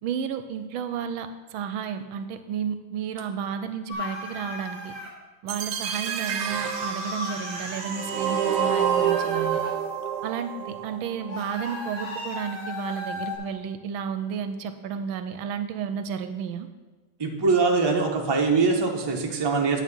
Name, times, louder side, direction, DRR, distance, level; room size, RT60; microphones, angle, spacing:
voice 1, 0.0-4.9 5.4-9.6 10.2-16.7, right 7 dB, 80° right, 9 dB, 1.4 m, -32 dB
sound 1, 3.9-5.1 6.3-9.7 11.3-13.4, left 1 dB, 80° left, 3.6 m, -35 dB
sound 2, 5.5-11.5, right 8 dB, 65° right, 1.2 m, -28 dB
voice 2, 17.2-19.8, right 4 dB, 20° right, 1 dB, 0.7 m, -23 dB
9.5 x 7.9 x 5.4 m, 1.3 s
omnidirectional pair, 2.3 m